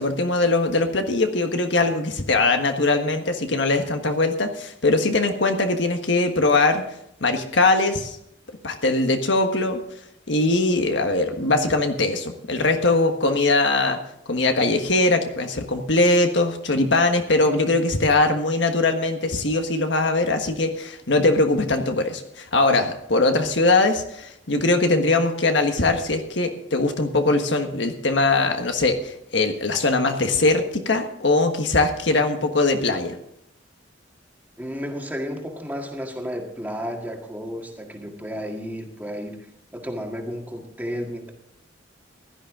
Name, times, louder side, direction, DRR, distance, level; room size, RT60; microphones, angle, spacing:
voice 1, 0.0-6.8 7.2-8.2 8.6-9.8 10.3-14.0 14.3-33.2, left 2 dB, 70° left, 5 dB, 1.5 m, -21 dB
voice 2, 34.6-39.5 39.7-41.3, equal, 10° right, 2 dB, 1.8 m, -32 dB
16.0 x 11.5 x 3.7 m, 0.75 s
head